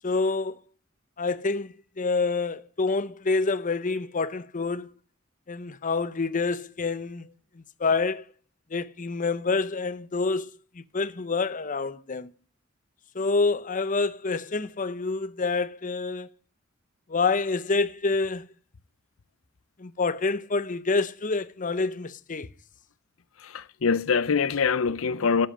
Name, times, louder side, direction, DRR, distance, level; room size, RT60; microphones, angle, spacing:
voice 1, 0.0-0.6 1.2-4.9 5.5-7.3 7.8-8.2 8.7-10.5 10.9-12.3 13.1-16.3 17.1-18.5 19.8-22.5, left 3 dB, 40° left, 0.8 m, -27 dB
voice 2, 23.4-25.5, left 5 dB, 80° left, 0.7 m, -24 dB
13.0 x 7.9 x 10.0 m
head